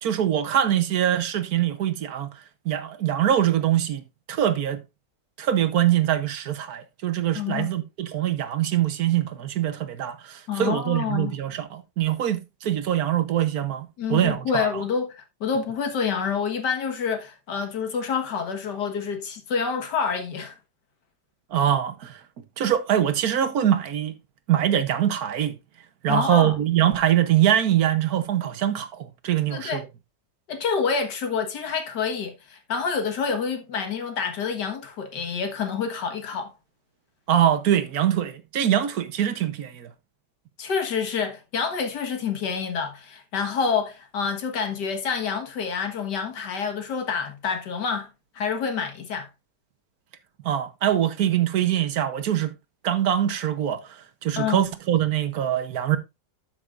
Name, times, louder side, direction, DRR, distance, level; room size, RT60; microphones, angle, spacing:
voice 1, 0.0-2.3 2.6-4.0 4.3-4.8 5.4-14.8 21.5-22.2 22.6-24.1 24.5-25.6 26.0-29.9 37.3-39.9 50.4-52.5 52.8-56.0, right 11 dB, 65° right, 1.3 m, -23 dB
voice 2, 7.3-7.7 10.5-11.4 14.0-20.5 26.1-26.6 29.5-29.8 30.5-36.5 40.6-48.1 48.4-49.3 54.4-54.7, left 6 dB, 90° left, 2.1 m, -28 dB
12.5 x 6.2 x 2.5 m
omnidirectional pair, 1.8 m